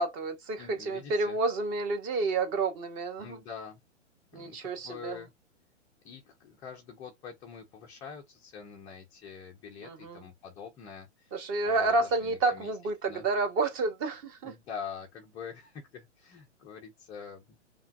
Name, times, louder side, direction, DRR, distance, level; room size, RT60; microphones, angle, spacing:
voice 1, 0.0-3.4 4.3-5.2 9.8-10.2 11.3-14.5, right 3 dB, 25° right, 1.0 m, -30 dB
voice 2, 0.6-1.4 3.2-3.8 4.3-5.3 6.0-11.3 11.6-12.7 13.1-13.2 14.4-17.6, left 6 dB, 10° left, 0.4 m, -45 dB
5.5 x 2.3 x 2.4 m
figure-of-eight pair, 120°, 37 cm